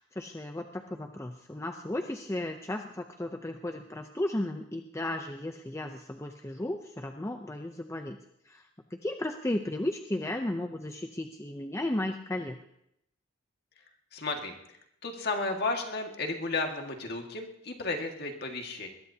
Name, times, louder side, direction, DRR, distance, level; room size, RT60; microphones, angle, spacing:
voice 1, 0.0-8.2 8.5-8.6 8.9-12.6, left 1 dB, 15° left, 5 dB, 0.6 m, -34 dB
voice 2, 14.1-14.8 15.0-18.9, left 3 dB, 50° left, 3 dB, 1.9 m, -33 dB
22.0 x 20.5 x 2.8 m, 0.77 s
head